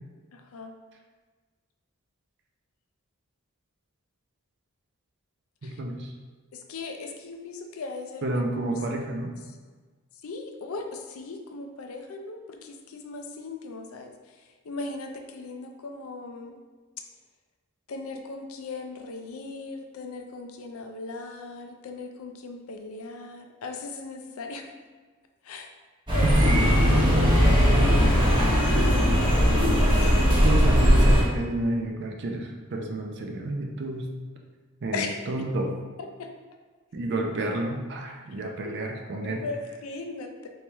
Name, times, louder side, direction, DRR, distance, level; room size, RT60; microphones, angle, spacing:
voice 1, 0.3-0.7 5.6-5.8 6.7-8.4 10.2-14.1 14.6-16.6 17.9-24.7 25.4-25.7 26.1-28.1 28.8-29.7 34.9-35.2 36.2-36.3 38.4-38.7 39.2-40.5, left 3 dB, 70° left, 4 dB, 0.4 m, -38 dB
voice 2, 5.6-6.1 8.2-9.3 26.2-26.5 30.4-34.0 34.8-35.7 36.9-39.4, right 2 dB, 55° right, 2 dB, 0.5 m, -30 dB
sound 1, 26.1-31.2, equal, 20° right, 0.9 m, -19 dB
3.1 x 2.9 x 3.4 m, 1.4 s
head